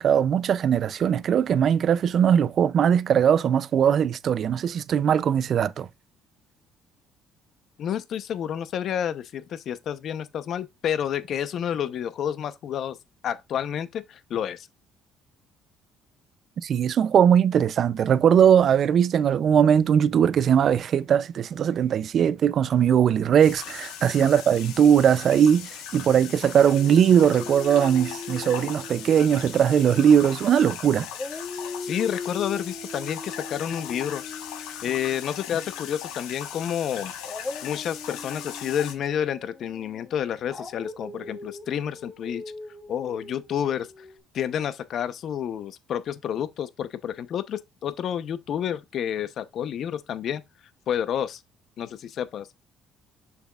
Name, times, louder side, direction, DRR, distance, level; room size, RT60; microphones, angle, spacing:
voice 1, 0.0-5.9 16.6-31.1, right 8 dB, 55° right, 0.5 m, -20 dB
voice 2, 7.8-13.0 13.2-14.7 31.8-34.2 34.8-37.1 37.6-42.4 42.9-44.1 44.3-50.4 50.9-51.4 51.8-52.5, left 9 dB, 60° left, 0.8 m, -29 dB
sound 1, 23.4-38.9, left 9 dB, 90° left, 1.2 m, -39 dB
Dog, 26.6-30.7 31.1-36.1 37.2-44.2, left 3 dB, 25° left, 1.8 m, -40 dB
6.9 x 6.0 x 2.4 m
cardioid pair, 90°, 0 cm